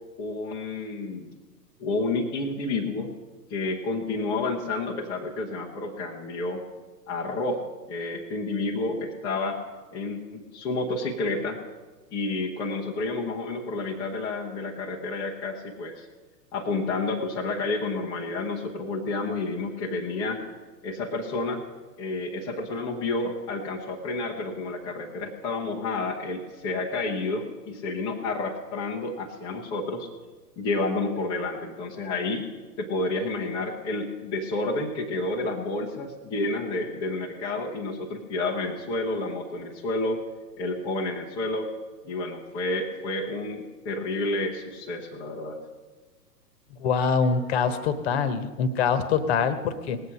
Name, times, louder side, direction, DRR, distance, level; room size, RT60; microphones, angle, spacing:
voice 1, 0.2-1.3 1.8-3.1 3.5-6.6 7.1-9.6 9.9-11.6 12.1-16.1 16.5-20.4 20.8-21.6 22.0-30.1 30.6-32.4 32.8-40.2 40.6-41.7 42.0-45.6, left 2 dB, 10° left, -3 dB, 0.5 m, -30 dB
voice 2, 46.8-50.0, left 6 dB, 40° left, 12 dB, 1.1 m, -24 dB
18.5 x 8.2 x 5.6 m, 1.3 s
figure-of-eight pair, 115°, 50 cm